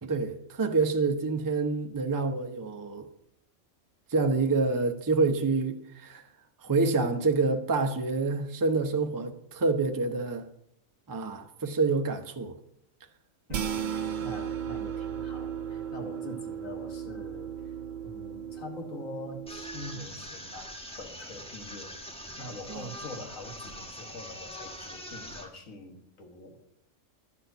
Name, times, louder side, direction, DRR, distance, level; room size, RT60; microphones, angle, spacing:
voice 1, 0.0-3.1 4.1-6.2 6.6-10.5 11.1-12.5 22.7-22.8, right 3 dB, 20° right, 0.6 m, -27 dB
voice 2, 13.5-17.7 18.0-26.6, left 1 dB, 65° left, 1.8 m, -44 dB
sound 1, 13.5-20.0, right 8 dB, 85° right, 0.4 m, -35 dB
sound 2, 19.5-25.5, equal, 5° left, 0.9 m, -43 dB
11.0 x 4.4 x 7.9 m
omnidirectional pair, 1.5 m